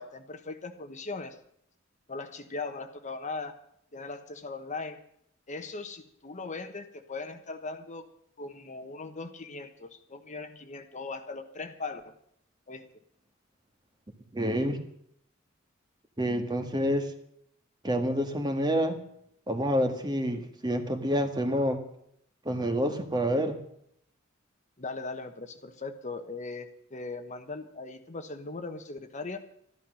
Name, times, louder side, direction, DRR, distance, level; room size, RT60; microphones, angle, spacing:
voice 1, 0.0-1.4 2.1-3.5 3.9-5.0 5.5-8.1 8.4-12.1 12.7-12.9 24.8-29.4, left 3 dB, 35° left, 8 dB, 1.1 m, -39 dB
voice 2, 14.3-14.8 16.2-17.1 17.8-19.0 19.5-21.8 22.5-23.6, equal, 20° right, 7 dB, 1.6 m, -28 dB
13.5 x 12.0 x 6.4 m, 0.70 s
head